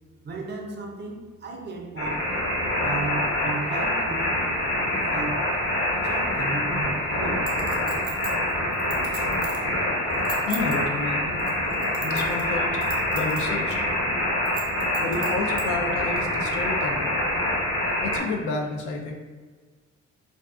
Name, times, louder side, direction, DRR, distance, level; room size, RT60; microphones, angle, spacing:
voice 1, 0.2-2.3 2.8-4.3 5.1-5.5 6.0-7.5 9.3-9.4, right 3 dB, 35° right, 1 dB, 0.5 m, -34 dB
sound 1, 2.0-18.2, left 1 dB, 45° left, 0.9 m, -26 dB
Chink clink, 7.5-9.7 10.1-10.8 11.4-12.5 12.8-13.4 13.7-13.8 14.5-15.6 16.2-16.3, right 5 dB, 75° right, 0.8 m, -37 dB
voice 2, 10.4-11.3 12.0-12.8 13.1-13.8 15.0-17.1 18.0-19.1, left 3 dB, 75° left, 2 dB, 0.5 m, -30 dB
2.4 x 2.3 x 2.4 m, 1.4 s
cardioid pair, 90°, 30 cm